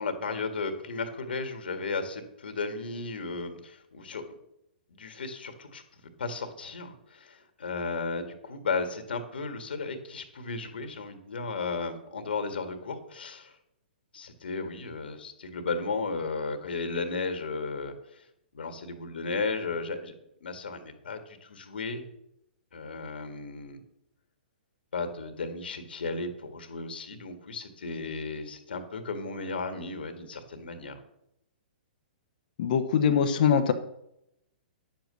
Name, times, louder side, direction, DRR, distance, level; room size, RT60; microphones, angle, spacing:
voice 1, 0.0-4.3 4.9-5.8 6.2-13.6 14.1-18.3 18.5-20.1 20.4-22.1 22.7-23.8 24.9-31.0, left 4 dB, 75° left, 7 dB, 1.9 m, -34 dB
voice 2, 32.6-33.7, left 7 dB, 55° left, 7 dB, 1.1 m, -23 dB
10.5 x 7.4 x 6.4 m, 0.80 s
hypercardioid pair, 125°, 5 cm